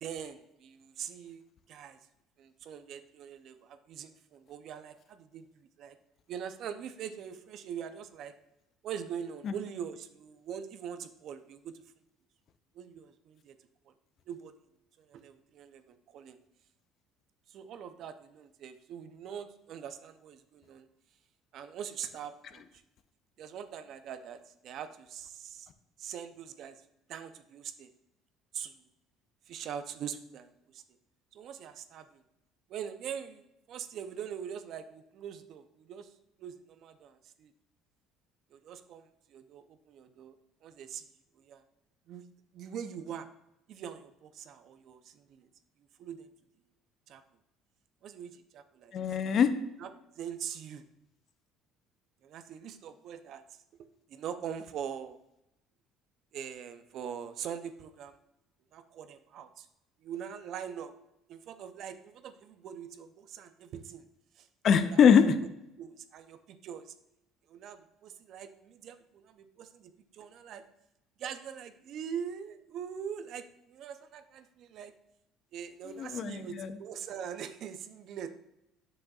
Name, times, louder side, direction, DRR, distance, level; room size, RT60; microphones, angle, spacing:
voice 1, 0.0-1.4 1.7-2.0 2.4-6.0 6.3-8.3 8.8-11.7 12.7-13.6 14.3-14.5 15.0-16.4 17.5-20.9 21.5-22.6 23.4-25.7 26.0-26.8 27.1-27.9 28.5-28.7 29.5-30.8 31.3-32.2 32.7-36.1 36.4-37.5 38.5-40.4 40.6-41.0 41.4-41.6 42.1-42.2 42.5-43.3 43.7-45.5 46.0-46.3 47.1-47.2 48.0-48.9 49.8-49.9 50.2-50.8 52.2-53.4 54.1-55.2 56.3-58.2 58.7-59.7 60.0-60.9 61.3-64.0 64.4-64.5 64.8-65.0 65.8-66.9 67.5-70.6 71.2-74.9 75.5-78.3, right 8 dB, 60° right, 0.6 m, -42 dB
voice 2, 48.9-49.7 64.6-65.4 76.0-76.7, left 7 dB, 50° left, 0.5 m, -23 dB
7.7 x 6.2 x 2.4 m
cardioid pair, 115°, 0 cm